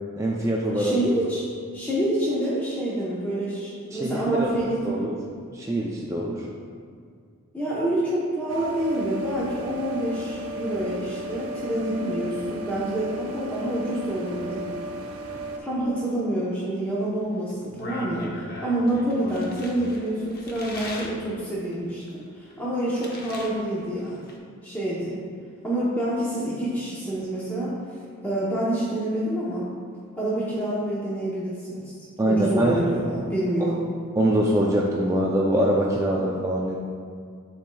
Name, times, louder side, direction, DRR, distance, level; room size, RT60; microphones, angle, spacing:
voice 1, 0.2-0.9 3.9-4.5 4.8-5.2 5.5-6.4 32.2-32.8 34.2-36.8, right 1 dB, 15° right, -3 dB, 0.3 m, -23 dB
voice 2, 0.7-1.4 1.7-5.0 7.5-14.6 15.6-24.3 24.6-25.1 25.6-27.8 28.2-29.7 30.2-31.9 32.2-33.8, right 1 dB, 10° left, -9 dB, 0.8 m, -27 dB
sound 1, 8.5-15.6, right 1 dB, 75° right, 0.6 m, -34 dB
sound 2, 17.5-21.2 21.7-23.5 23.8-24.4, left 1 dB, 45° left, 0.7 m, -39 dB
10.5 x 4.3 x 2.3 m, 2.1 s
head